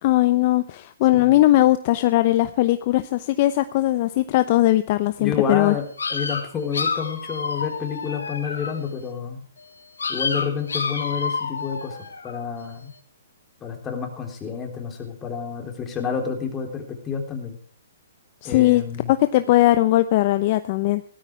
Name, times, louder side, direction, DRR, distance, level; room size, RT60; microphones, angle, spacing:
voice 1, 0.0-5.7 18.4-18.8 19.1-21.0, left 16 dB, 45° left, 11 dB, 0.8 m, -19 dB
voice 2, 5.2-9.4 10.1-12.0 12.2-12.9 13.6-17.6 18.4-19.1, left 6 dB, 15° left, 2 dB, 3.6 m, -29 dB
sound 1, 6.0-8.9 10.0-12.4, left 5 dB, 85° left, 3.2 m, -29 dB
17.0 x 13.5 x 3.3 m, 0.43 s
hypercardioid pair, 140°, 0 cm